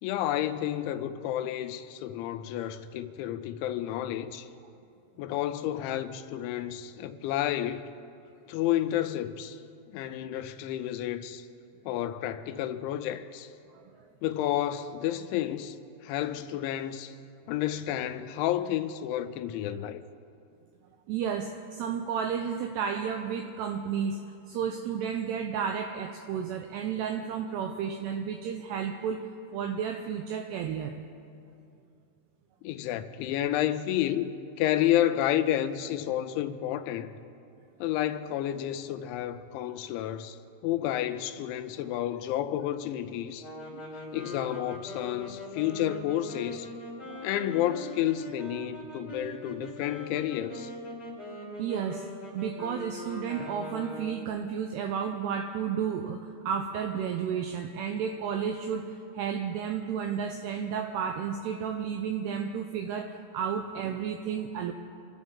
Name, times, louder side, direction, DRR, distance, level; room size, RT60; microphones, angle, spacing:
voice 1, 0.0-4.5 5.2-7.8 8.5-9.6 9.9-11.5 11.9-13.5 14.2-15.8 16.0-17.1 17.5-20.0 32.6-37.2 37.8-40.4 40.6-43.5 44.1-46.7 47.2-50.7, left 12 dB, 85° left, 2.9 m, -30 dB
voice 2, 21.1-24.2 24.5-29.3 29.5-31.1 43.7-43.8 47.0-47.3 51.6-52.1 52.3-64.7, right 7 dB, 85° right, 2.4 m, -32 dB
sound 1, 43.4-54.4, left 1 dB, 15° left, 1.5 m, -42 dB
26.0 x 12.0 x 3.6 m
omnidirectional pair, 5.4 m